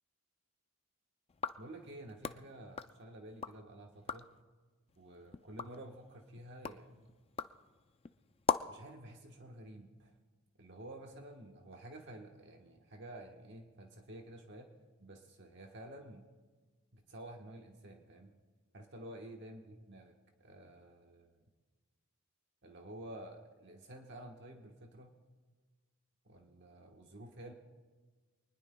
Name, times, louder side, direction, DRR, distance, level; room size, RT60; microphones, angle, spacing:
sound 1, 1.3-3.6 3.9-4.4 4.9-8.9, left 6 dB, 25° left, 0.3 m, -41 dB
voice 1, 1.6-4.3 5.0-7.1 8.7-10.1 10.6-14.7 15.0-16.3 16.9-18.3 18.7-20.1 20.4-21.5 22.6-25.1 26.2-27.5, right 1 dB, 55° right, 2 dB, 1.2 m, -51 dB
24.5 x 20.0 x 2.2 m, 1.4 s
head